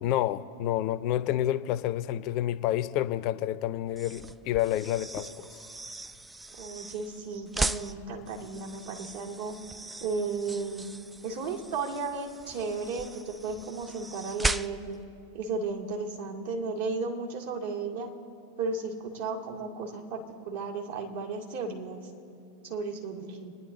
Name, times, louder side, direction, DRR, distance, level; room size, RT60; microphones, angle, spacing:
voice 1, 0.0-5.5, left 13 dB, 40° left, 14 dB, 0.6 m, -29 dB
sound 1, 3.9-15.0, right 3 dB, 10° right, 0.4 m, -38 dB
voice 2, 6.6-9.6 10.0-10.8 11.2-15.0 15.3-18.1 18.6-22.0 22.6-23.5, right 4 dB, 60° right, -2 dB, 2.3 m, -34 dB
27.5 x 10.0 x 4.2 m, 2.6 s
figure-of-eight pair, 90°, 0 cm